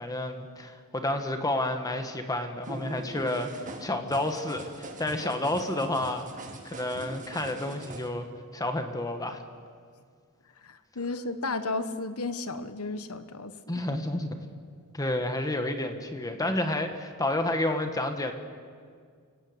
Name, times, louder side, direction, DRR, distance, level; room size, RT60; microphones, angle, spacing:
voice 1, 0.0-3.5 3.8-6.3 6.6-8.3 8.5-9.4 13.7-14.4 14.9-18.3, left 1 dB, 15° left, 6 dB, 1.6 m, -30 dB
sound 1, 2.6-8.1, right 2 dB, 35° right, 2.2 m, -42 dB
voice 2, 10.6-13.8, left 3 dB, 75° left, 11 dB, 1.4 m, -34 dB
29.5 x 18.0 x 8.2 m, 2.1 s
head